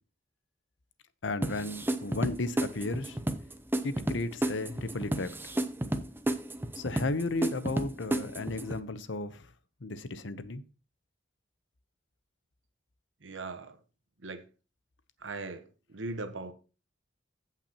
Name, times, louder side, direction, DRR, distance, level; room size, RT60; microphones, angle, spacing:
voice 1, 1.2-3.2 3.8-5.3 6.7-9.5 9.8-10.6, left 2 dB, 80° left, 0.8 m, -34 dB
sound 1, 1.4-8.8, right 1 dB, 10° right, 0.7 m, -32 dB
voice 2, 13.2-13.8 14.2-14.5 15.2-16.5, right 3 dB, 90° right, 1.1 m, -39 dB
15.5 x 5.8 x 2.9 m
head